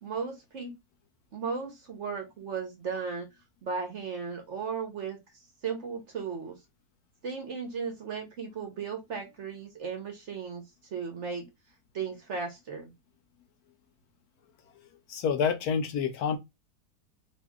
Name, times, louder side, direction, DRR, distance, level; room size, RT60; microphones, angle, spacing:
voice 1, 0.0-0.7 1.3-3.3 3.6-5.2 5.6-6.6 7.2-10.6 10.9-11.5 11.9-12.9, right 5 dB, 55° right, 0.9 m, -35 dB
voice 2, 15.1-16.4, left 7 dB, 70° left, 1.0 m, -28 dB
2.7 x 2.7 x 3.5 m
omnidirectional pair, 1.8 m